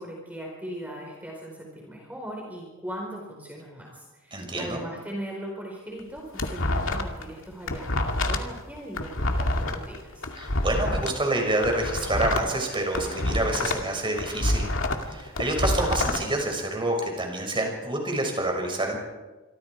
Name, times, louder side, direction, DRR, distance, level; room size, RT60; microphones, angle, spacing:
voice 1, 0.0-10.3, right 1 dB, 10° right, -1 dB, 4.7 m, -39 dB
voice 2, 4.3-4.8 10.3-14.7 15.1-19.0, right 1 dB, 25° right, 2 dB, 6.3 m, -27 dB
sound 1, 6.0-7.2 7.5-11.1 11.5-13.9 14.2-16.2, left 1 dB, 70° left, 2.4 m, -27 dB
27.5 x 24.5 x 4.9 m, 1.2 s
head